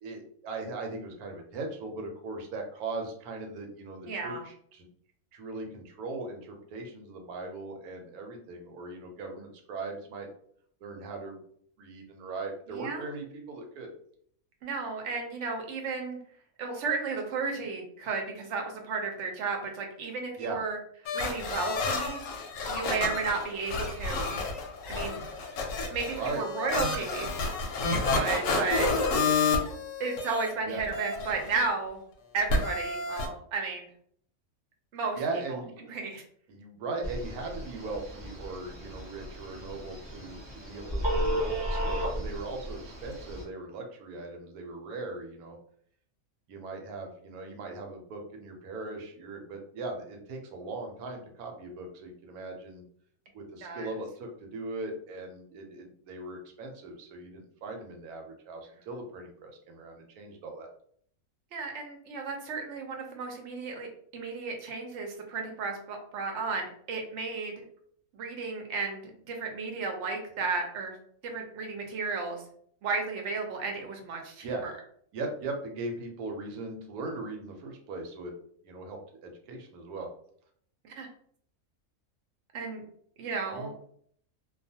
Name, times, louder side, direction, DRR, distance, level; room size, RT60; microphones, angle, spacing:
voice 1, 0.0-4.9 5.3-10.3 10.8-11.4 11.8-13.9 20.4-20.6 26.2-26.8 30.7-30.8 35.2-35.7 36.5-45.6 46.5-52.8 53.3-60.7 74.4-74.7 75.1-78.3 78.6-80.1 83.5-83.7, right 3 dB, 80° right, 3 dB, 1.1 m, -39 dB
voice 2, 4.1-4.4 12.7-13.0 14.6-16.2 16.6-20.8 21.1-22.2 22.7-24.3 24.9-25.2 25.9-27.3 27.8-28.9 30.0-32.0 32.3-33.9 34.9-35.2 35.5-35.6 35.9-36.2 53.6-53.9 61.5-63.9 64.1-67.6 68.1-71.0 71.2-72.4 72.8-74.7 80.8-81.1 82.5-82.8 83.2-83.7, right 4 dB, 60° right, 2 dB, 0.8 m, -33 dB
sound 1, 21.1-30.5 30.8-31.6 32.5-33.3, left 3 dB, 70° left, 0.9 m, -30 dB
Telephone, 37.0-43.4, equal, 25° right, 0.7 m, -34 dB
2.4 x 2.3 x 2.7 m, 0.62 s
omnidirectional pair, 1.6 m